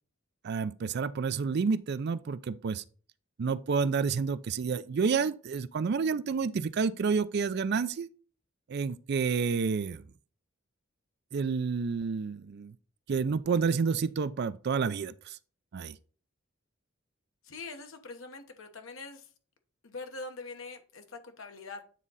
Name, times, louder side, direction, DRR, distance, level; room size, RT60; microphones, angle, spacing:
voice 1, 0.4-2.8 3.4-8.1 8.7-10.0 11.3-12.7 13.1-15.4 15.7-16.0, right 5 dB, 55° right, 0.4 m, -29 dB
voice 2, 17.4-19.3 19.8-21.8, left 3 dB, 80° left, 1.1 m, -43 dB
9.1 x 3.7 x 4.0 m
head